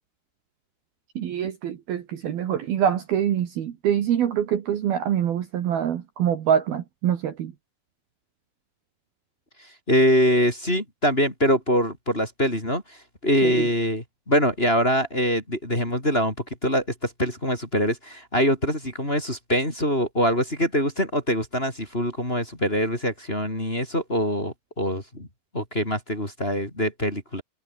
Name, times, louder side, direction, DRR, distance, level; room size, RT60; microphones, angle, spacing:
voice 1, 1.1-7.5 13.4-13.7, right 9 dB, 60° right, 3.4 m, -25 dB
voice 2, 9.9-13.0 13.2-16.3 16.6-25.3 25.5-27.4, equal, 10° left, 4.4 m, -24 dB
omnidirectional pair, 5.4 m